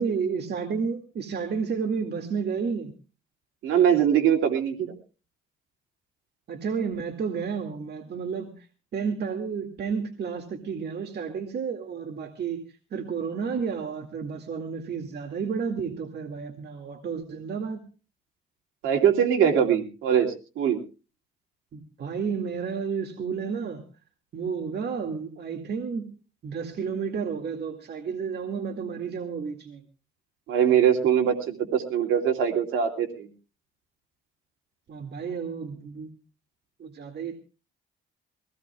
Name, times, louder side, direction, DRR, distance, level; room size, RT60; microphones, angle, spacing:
voice 1, 0.0-2.9 6.5-8.7 8.9-17.8 21.7-23.8 24.3-26.1 26.4-29.8 34.9-36.1 36.8-37.4, right 6 dB, 55° right, 5 dB, 2.2 m, -31 dB
voice 2, 3.6-4.9 18.8-20.8 30.5-33.3, right 8 dB, 90° right, 3 dB, 2.6 m, -22 dB
23.0 x 17.5 x 2.4 m, 0.34 s
cardioid pair, 90°, 20 cm